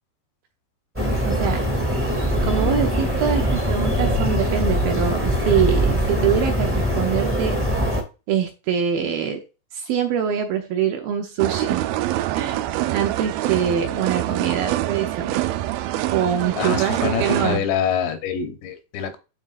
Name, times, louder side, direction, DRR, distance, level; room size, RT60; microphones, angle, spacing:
sound 1, 0.9-8.0, equal, 10° right, 0.6 m, -22 dB
voice 1, 1.2-1.6 2.4-7.6 8.3-9.4 9.7-11.8 12.3-15.4 16.1-17.6, right 8 dB, 75° right, 2.3 m, -24 dB
sound 2, 11.4-17.6, right 14 dB, 90° right, 2.1 m, -25 dB
voice 2, 16.6-19.2, left 8 dB, 85° left, 3.3 m, -25 dB
12.0 x 4.3 x 2.5 m
omnidirectional pair, 4.9 m